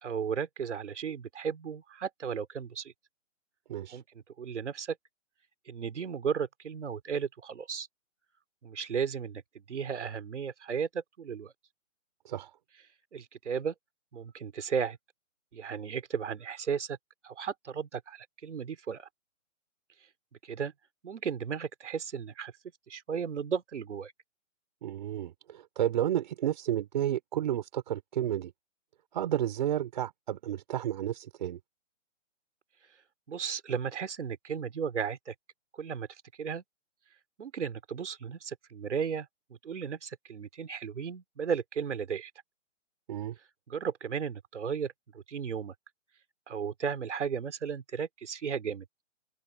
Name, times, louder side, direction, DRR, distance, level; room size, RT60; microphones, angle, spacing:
voice 1, 0.0-2.9 3.9-5.0 5.7-7.9 8.6-9.4 9.7-11.5 13.1-13.7 14.1-15.0 15.5-17.0 17.2-19.1 20.4-20.7 21.0-22.5 22.9-24.1 33.3-35.3 35.7-36.1 36.4-36.6 37.4-39.3 39.6-42.3 43.7-45.7 46.5-48.8, right 6 dB, 65° right, 3.3 m, -35 dB
voice 2, 3.7-4.0 12.3-12.5 24.8-28.5 29.1-31.6 43.1-43.4, right 11 dB, 35° right, 5.5 m, -31 dB
hypercardioid pair, 170°, 38 cm